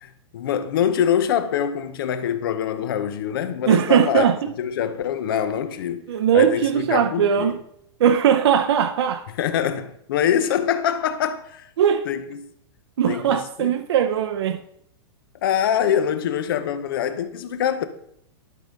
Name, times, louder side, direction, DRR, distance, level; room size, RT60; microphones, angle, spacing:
voice 1, 0.0-4.3 4.6-6.0 6.3-7.5 9.4-11.7 12.1-12.5 13.1-13.7 15.4-17.9, left 9 dB, 50° left, 0.8 m, -24 dB
voice 2, 3.7-4.5 6.1-7.6 8.0-9.2 11.8-12.1 13.0-14.6, right 8 dB, 65° right, 0.7 m, -19 dB
12.0 x 4.0 x 5.2 m
supercardioid pair, 175°, 15 cm